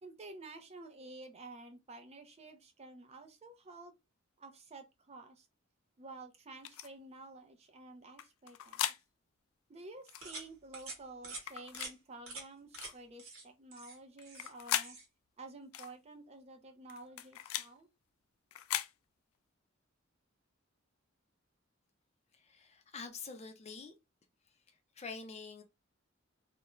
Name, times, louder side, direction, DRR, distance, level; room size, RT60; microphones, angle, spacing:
voice 1, 0.0-3.9 4.4-5.5 6.0-8.9 9.7-15.0 15.4-17.9, right 2 dB, 30° right, 0.5 m, -51 dB
sound 1, 6.6-6.9 8.2-9.0 10.1-10.3 11.4-11.9 12.8-13.0 14.2-14.9 15.7-15.9 16.9-17.7 18.5-18.9, left 12 dB, 90° left, 0.3 m, -38 dB
sound 2, 10.2-10.5 10.7-11.0 11.2-11.4 11.7-11.9 12.3-12.4 12.7-12.9 13.2-13.4 13.7-14.5 14.8-15.0, right 3 dB, 90° right, 1.0 m, -46 dB
voice 2, 22.3-23.9 24.7-25.6, left 4 dB, 35° left, 0.5 m, -47 dB
2.4 x 2.1 x 3.0 m
head